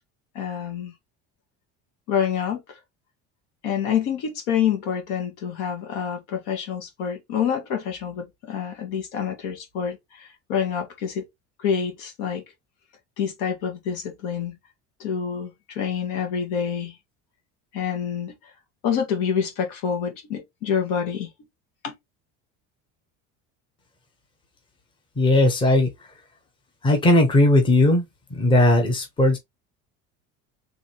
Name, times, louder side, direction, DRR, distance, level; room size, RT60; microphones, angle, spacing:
voice 1, 0.4-0.9 2.1-2.8 3.6-11.2 11.6-12.4 13.2-14.6 15.0-17.0 17.7-18.3 18.8-21.3 21.8-21.9, left 8 dB, 75° left, 2.0 m, -27 dB
voice 2, 25.2-25.9 26.8-28.0 28.3-29.4, left 1 dB, 15° left, 1.0 m, -17 dB
4.8 x 3.4 x 2.9 m
cardioid pair, 170°, 31 cm